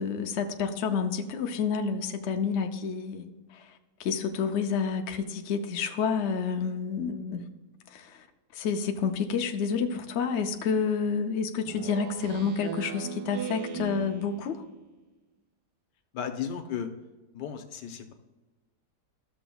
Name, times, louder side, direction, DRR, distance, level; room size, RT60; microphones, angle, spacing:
voice 1, 0.0-3.7 4.0-7.5 7.9-8.3 8.5-14.6, left 6 dB, 60° left, 5 dB, 0.8 m, -29 dB
Speech synthesizer, 11.7-14.7, right 7 dB, 75° right, 1.2 m, -38 dB
voice 2, 16.1-16.9 17.3-18.1, left 8 dB, 90° left, 6 dB, 1.5 m, -34 dB
13.0 x 6.8 x 2.3 m, 1.2 s
omnidirectional pair, 1.8 m